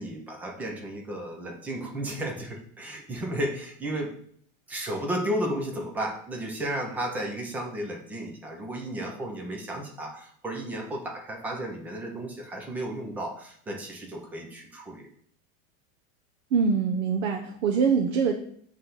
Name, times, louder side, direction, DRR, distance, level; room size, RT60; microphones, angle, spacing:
voice 1, 0.0-4.1 4.7-15.1, right 1 dB, 5° right, 1 dB, 0.3 m, -33 dB
voice 2, 16.5-18.3, right 6 dB, 65° right, 2 dB, 0.9 m, -24 dB
7.4 x 3.3 x 5.6 m, 0.63 s
supercardioid pair, 160°, 39 cm